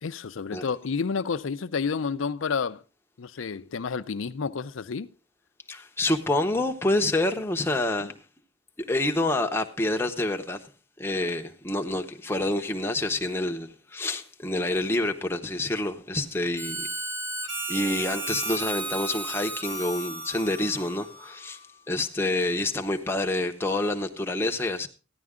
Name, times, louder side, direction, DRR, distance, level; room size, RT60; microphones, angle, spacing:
voice 1, 0.0-2.8 3.2-5.1 8.0-8.1, left 5 dB, 90° left, 0.5 m, -30 dB
voice 2, 5.7-8.2 8.8-10.6 11.0-16.9 17.7-21.6 21.9-24.9, left 2 dB, 10° left, 0.8 m, -27 dB
Harmonica, 16.6-21.7, right 2 dB, 65° right, 2.1 m, -34 dB
14.0 x 10.5 x 3.6 m
head